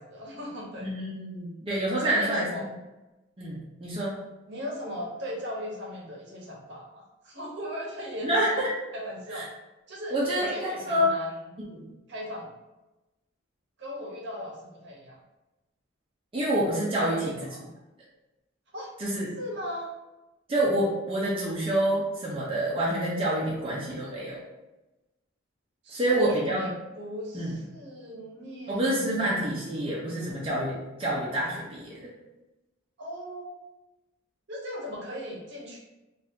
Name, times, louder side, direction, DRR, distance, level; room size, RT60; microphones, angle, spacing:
voice 1, 0.0-0.9 2.0-2.7 4.5-8.6 8.9-9.5 9.9-11.6 12.1-12.5 13.8-15.2 17.0-17.7 18.7-18.9 19.4-19.9 25.8-29.5 33.0-33.6 34.5-35.8, equal, 60° right, -3 dB, 0.8 m, -38 dB
voice 2, 0.8-2.5 3.4-4.2 8.2-8.7 9.3-9.4 10.1-11.1 11.7-11.9 16.3-17.3 19.0-19.3 20.5-24.4 25.9-26.7 27.3-27.6 28.7-32.1, right 1 dB, 25° right, -6 dB, 0.5 m, -27 dB
2.6 x 2.4 x 3.5 m, 1.0 s
head